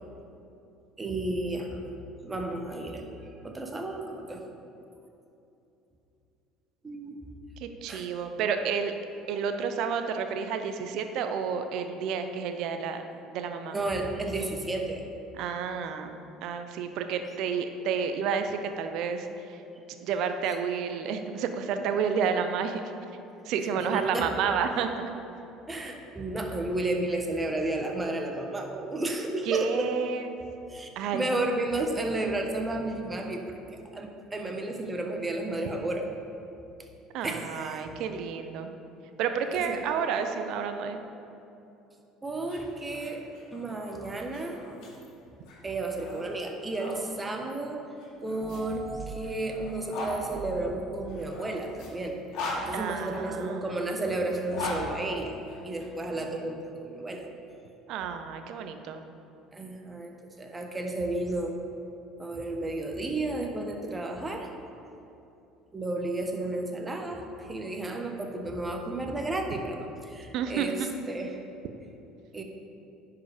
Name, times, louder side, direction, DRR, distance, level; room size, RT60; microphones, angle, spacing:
voice 1, 1.0-1.8 2.2-3.1 3.4-4.4 6.8-7.2 7.9-8.1 13.7-15.1 23.7-24.5 25.7-29.9 30.7-33.4 33.9-36.1 37.2-37.8 39.5-39.8 42.2-43.2 43.5-44.6 45.6-47.9 48.2-52.2 52.5-55.4 55.6-57.3 59.5-61.6 62.2-64.5 65.7-71.3 72.3-72.4, right 2 dB, 20° right, 3 dB, 1.2 m, -32 dB
voice 2, 7.6-8.9 9.3-13.0 13.3-13.8 15.3-19.6 20.0-22.8 23.5-24.9 29.5-30.3 31.0-31.2 37.1-38.7 39.2-41.0 52.7-53.8 57.9-59.0 70.3-70.7, right 6 dB, 65° right, 7 dB, 0.7 m, -30 dB
sound 1, 42.3-47.0 48.0-50.2 51.1-53.4 54.2-55.9, left 2 dB, 60° left, 2.1 m, -40 dB
sound 2, 48.4-51.4 52.6-55.9, right 3 dB, 40° right, 1.6 m, -43 dB
10.5 x 4.8 x 5.1 m, 2.8 s
hypercardioid pair, 65°, 0 cm